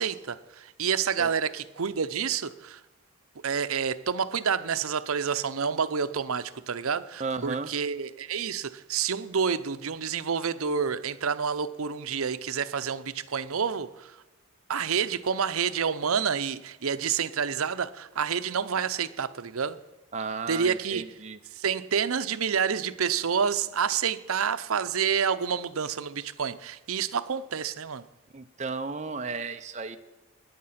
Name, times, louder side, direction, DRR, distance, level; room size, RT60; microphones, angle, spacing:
voice 1, 0.0-2.8 3.4-14.2 14.7-19.8 20.5-21.0 21.5-28.0, right 6 dB, 80° right, 0.7 m, -28 dB
voice 2, 7.2-7.7 20.1-21.4 28.3-30.0, right 4 dB, 30° right, 0.6 m, -34 dB
17.5 x 10.0 x 5.8 m
head